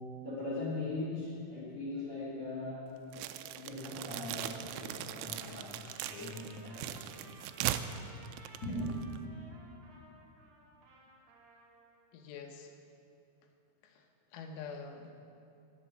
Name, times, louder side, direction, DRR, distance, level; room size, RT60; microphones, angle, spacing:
voice 1, 0.2-2.8 3.5-7.2 8.6-8.9, left 2 dB, 35° left, -8 dB, 3.5 m, -40 dB
sound 1, 3.1-9.2, right 12 dB, 90° right, 2.6 m, -40 dB
Trumpet, 5.1-12.1, right 2 dB, 55° right, 2.9 m, -58 dB
voice 2, 12.1-12.8 13.8-15.2, left 5 dB, 85° left, 4 dB, 3.9 m, -46 dB
19.5 x 7.9 x 7.3 m, 2.7 s
omnidirectional pair, 6.0 m